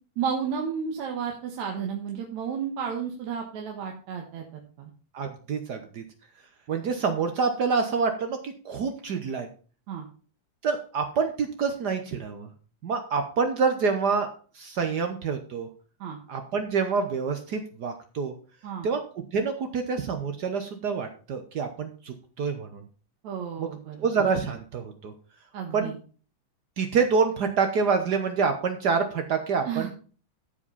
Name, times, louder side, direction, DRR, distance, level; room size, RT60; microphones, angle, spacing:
voice 1, 0.2-4.5 4.8-4.9 9.9-10.1 16.0-16.2 18.6-18.9 23.2-24.1 25.5-26.0 29.7-29.9, right 7 dB, 75° right, 1 dB, 2.7 m, -32 dB
voice 2, 5.1-6.0 6.7-9.5 10.6-12.5 12.8-14.3 14.5-15.7 16.3-18.3 18.8-19.0 19.3-22.8 23.6-23.7 24.0-25.1 25.7-25.9 26.8-29.9, right 5 dB, 90° right, 6 dB, 0.8 m, -27 dB
14.0 x 5.2 x 5.4 m, 0.39 s
omnidirectional pair, 3.3 m